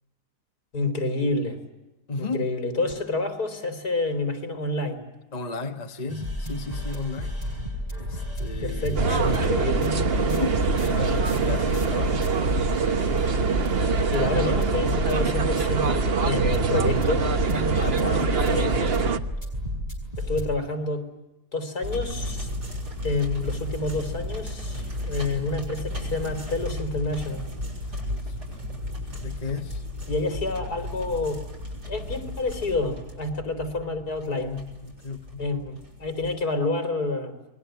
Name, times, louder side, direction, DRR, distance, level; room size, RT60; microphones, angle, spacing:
voice 1, 0.7-1.6 2.2-5.0 8.6-9.9 14.1-17.3 18.5-18.9 20.2-21.1 21.5-22.5 23.0-27.4 30.1-31.4 31.9-34.5 35.4-37.4, left 2 dB, 65° left, 4.1 m, -28 dB
voice 2, 2.1-2.5 5.3-7.3 8.0-9.5 10.2-12.3 17.7-18.9 27.9-29.8 34.3-35.4, left 3 dB, 25° left, 1.4 m, -35 dB
sound 1, 6.1-20.5, equal, 25° right, 5.9 m, -32 dB
sound 2, 9.0-19.2, right 4 dB, 40° right, 1.3 m, -24 dB
sound 3, 21.8-36.4, left 1 dB, 75° right, 7.6 m, -34 dB
28.0 x 22.0 x 9.1 m
omnidirectional pair, 1.7 m